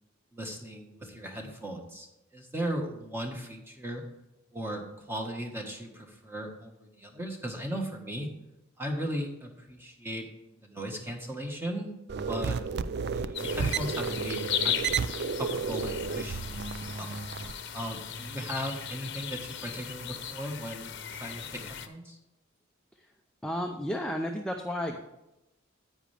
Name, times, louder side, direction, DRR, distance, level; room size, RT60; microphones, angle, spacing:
voice 1, 0.3-2.1 2.3-4.0 4.5-8.3 8.8-10.3 10.6-11.9 12.3-12.6 13.1-14.9 15.4-17.2 17.7-20.9 21.2-22.2, equal, 10° right, 2 dB, 1.5 m, -37 dB
sound 1, 12.1-17.5, right 5 dB, 55° right, 0.4 m, -32 dB
sound 2, 13.3-21.9, left 8 dB, 60° left, 0.8 m, -37 dB
voice 2, 23.4-25.0, equal, 5° left, 2 dB, 0.6 m, -32 dB
10.0 x 8.9 x 3.4 m, 0.93 s
head